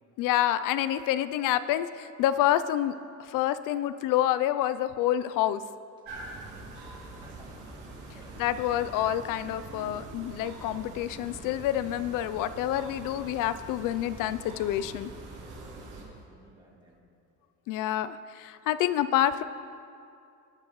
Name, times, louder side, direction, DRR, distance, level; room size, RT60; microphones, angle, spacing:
voice 1, 0.2-2.9 3.2-5.6 8.4-15.1 17.7-19.4, left 12 dB, 80° left, 14 dB, 0.5 m, -28 dB
sound 1, 6.0-16.0, right 2 dB, 65° right, 2.7 m, -44 dB
voice 2, 6.4-7.6 8.1-8.6 15.4-17.0, right 2 dB, 15° right, -2 dB, 1.6 m, -57 dB
18.5 x 9.2 x 3.0 m, 2.4 s
cardioid pair, 175°, 31 cm